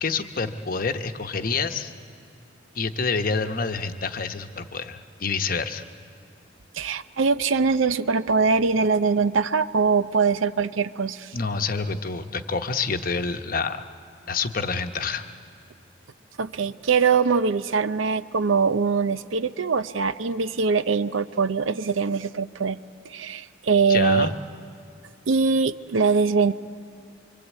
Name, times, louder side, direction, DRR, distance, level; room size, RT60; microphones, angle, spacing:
voice 1, 0.0-1.9 2.7-5.8 11.3-13.8 14.3-15.2 23.9-24.3, left 4 dB, 45° left, 7 dB, 0.9 m, -27 dB
voice 2, 6.7-11.3 16.4-22.8 23.0-24.3 25.3-26.5, right 5 dB, 85° right, 13 dB, 0.6 m, -22 dB
25.5 x 24.5 x 8.3 m, 2.3 s
head